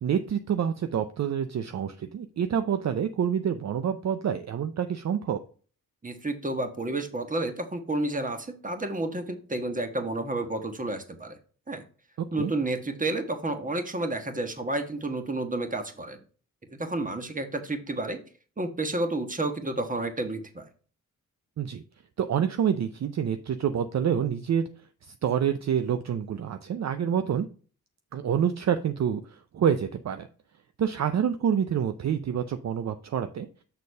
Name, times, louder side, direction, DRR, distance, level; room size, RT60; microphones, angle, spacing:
voice 1, 0.0-5.4 12.2-12.5 21.6-21.8 22.2-24.7 25.0-27.5 28.1-30.3 30.8-33.5, right 8 dB, 50° right, 9 dB, 0.5 m, -27 dB
voice 2, 6.0-11.4 11.7-11.8 12.3-16.2 16.7-18.2 18.6-20.7, right 2 dB, 25° right, 6 dB, 1.3 m, -30 dB
6.6 x 4.0 x 5.3 m, 0.40 s
cardioid pair, 75°, 35 cm